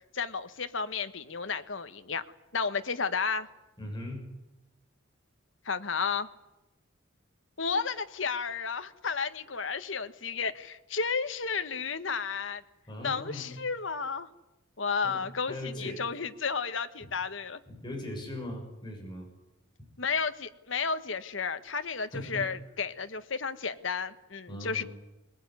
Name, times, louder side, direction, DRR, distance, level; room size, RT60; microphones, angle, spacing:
voice 1, 0.1-2.2 2.5-3.5 5.6-6.3 7.6-12.6 13.0-14.3 14.8-17.6 20.0-24.8, left 5 dB, 70° left, 10 dB, 1.3 m, -32 dB
voice 2, 3.8-4.3 12.9-13.6 15.0-16.1 17.7-19.3 22.1-22.5 24.5-24.9, left 1 dB, 20° left, 1 dB, 6.9 m, -39 dB
21.0 x 20.5 x 9.6 m, 0.98 s
head